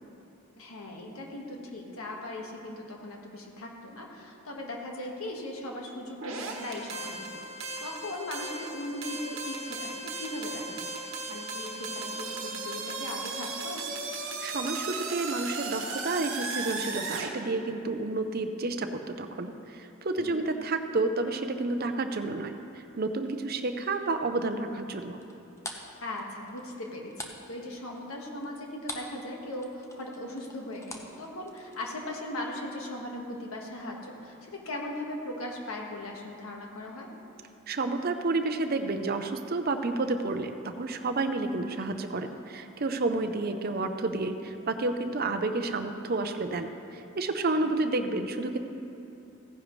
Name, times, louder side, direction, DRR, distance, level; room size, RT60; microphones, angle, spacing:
voice 1, 0.6-13.8 20.2-20.5 26.0-37.1 47.6-47.7, left 1 dB, 90° left, 0 dB, 1.6 m, -39 dB
sound 1, 6.2-17.3, right 3 dB, 65° right, 1.3 m, -36 dB
voice 2, 14.4-25.2 37.7-48.6, right 3 dB, 45° right, 7 dB, 0.6 m, -30 dB
sound 2, 25.2-29.2 29.5-31.9, left 2 dB, 15° left, 0.7 m, -43 dB
15.5 x 10.0 x 3.2 m, 2.8 s
head